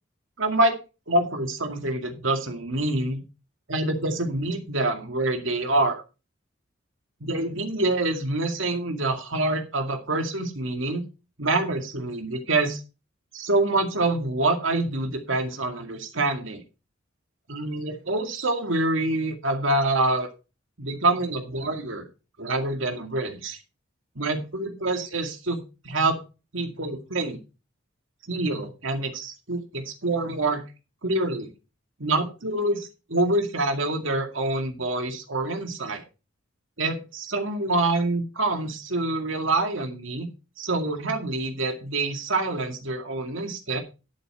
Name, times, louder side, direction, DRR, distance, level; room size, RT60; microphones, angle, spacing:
voice 1, 0.4-0.8 1.1-3.2 3.7-6.0 7.2-11.0 11.4-12.8 13.3-16.6 17.5-20.3 20.8-22.0 22.4-23.6 24.2-26.2 26.5-27.4 28.3-30.7 31.0-31.5 32.0-36.0 36.8-40.3 40.6-43.8, right 2 dB, 75° right, 5 dB, 2.2 m, -26 dB
12.0 x 8.4 x 4.4 m, 0.31 s
head